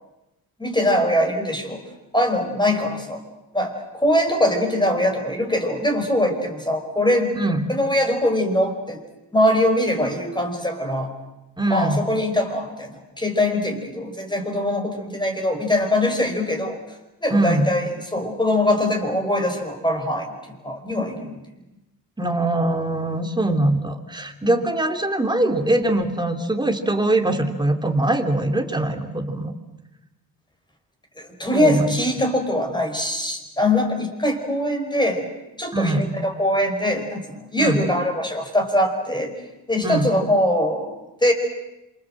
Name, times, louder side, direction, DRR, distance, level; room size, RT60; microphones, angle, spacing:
voice 1, 0.6-1.8 2.1-3.2 3.5-7.4 7.7-9.0 9.3-11.1 11.7-16.8 17.2-21.4 24.4-24.5 31.2-35.3 35.6-39.3 39.7-41.3, left 1 dB, 10° left, 3 dB, 5.0 m, -22 dB
voice 2, 11.6-12.0 17.3-17.7 22.2-29.5 31.5-32.0 35.7-36.1 37.6-37.8 39.8-40.1, right 1 dB, 10° right, 5 dB, 2.9 m, -22 dB
27.0 x 25.5 x 7.8 m, 0.98 s
cardioid pair, 90°, 37 cm